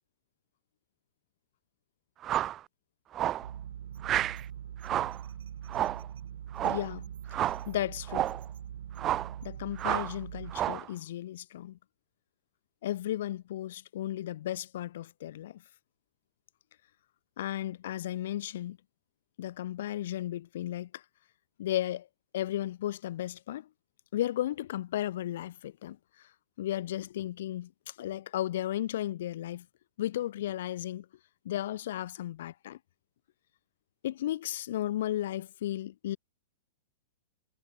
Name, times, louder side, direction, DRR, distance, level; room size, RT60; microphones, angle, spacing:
sound 1, 2.2-2.6 3.1-3.5 4.0-4.4 4.8-5.2 5.7-6.1 6.5-6.9 7.3-7.7 8.1-8.4 9.0-9.3 9.8-10.1 10.5-10.9, right 12 dB, 20° right, 0.3 m, -30 dB
sound 2, 3.4-10.6, right 9 dB, 85° right, 5.2 m, -43 dB
voice 1, 6.6-7.1 7.7-8.3 9.4-11.8 12.8-15.6 17.4-18.8 19.4-21.0 21.6-22.1 22.3-23.7 24.1-26.0 26.6-29.6 30.0-31.0 31.4-32.8 34.0-36.2, left 13 dB, 60° left, 1.3 m, -34 dB
supercardioid pair, 165°, 0 cm